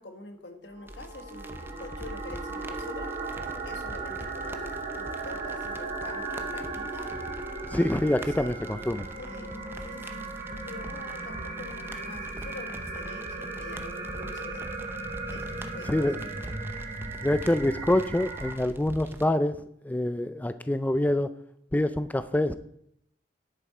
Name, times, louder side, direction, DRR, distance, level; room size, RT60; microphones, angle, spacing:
voice 1, 0.0-3.2 3.6-7.1 7.7-8.6 9.2-9.6 9.8-10.3 10.6-14.6 15.3-16.1, left 2 dB, 75° left, 5 dB, 1.6 m, -45 dB
sound 1, 0.7-18.5, right 3 dB, 40° right, 2.2 m, -37 dB
sound 2, 0.9-19.3, right 1 dB, 15° right, 0.7 m, -44 dB
voice 2, 7.7-9.1 15.9-16.2 17.2-19.6 19.8-21.3 21.7-22.5, left 1 dB, 10° left, 12 dB, 0.3 m, -26 dB
10.5 x 8.5 x 4.3 m, 0.71 s
head